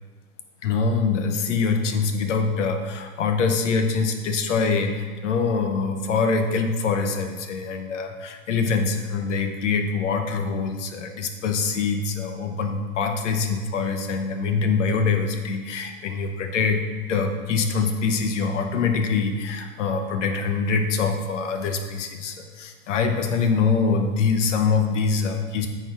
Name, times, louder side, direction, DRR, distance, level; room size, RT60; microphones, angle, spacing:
voice 1, 0.6-16.8 17.1-25.7, left 5 dB, 50° left, 5 dB, 0.9 m, -24 dB
9.0 x 4.1 x 4.1 m, 1.5 s
supercardioid pair, 170°, 45 cm